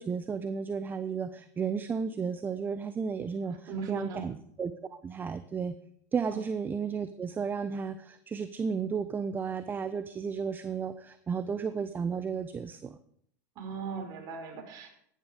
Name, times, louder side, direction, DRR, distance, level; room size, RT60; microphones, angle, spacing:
voice 1, 0.0-5.7 6.1-13.0, right 6 dB, 20° right, 12 dB, 0.9 m, -33 dB
voice 2, 3.5-4.2 6.3-6.4 13.6-15.0, right 5 dB, 45° right, 3 dB, 5.1 m, -38 dB
16.0 x 11.0 x 5.1 m, 0.66 s
hypercardioid pair, 105°, 9 cm